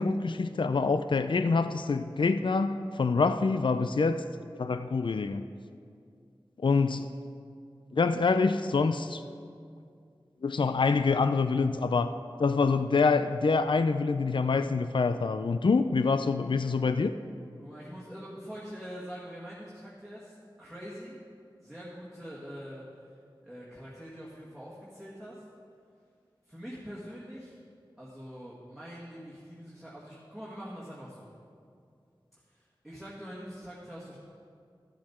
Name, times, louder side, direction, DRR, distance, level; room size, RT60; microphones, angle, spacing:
voice 1, 0.0-4.2 4.6-5.5 6.6-7.1 7.9-9.2 10.4-12.1 12.4-17.1, left 4 dB, 65° left, 10 dB, 0.4 m, -26 dB
voice 2, 17.6-21.2 21.6-22.8 23.4-25.4 26.5-27.6 28.0-31.3 32.5-34.2, equal, ahead, -7 dB, 1.9 m, -44 dB
13.5 x 7.5 x 4.3 m, 2.3 s
wide cardioid pair, 45°, 9 cm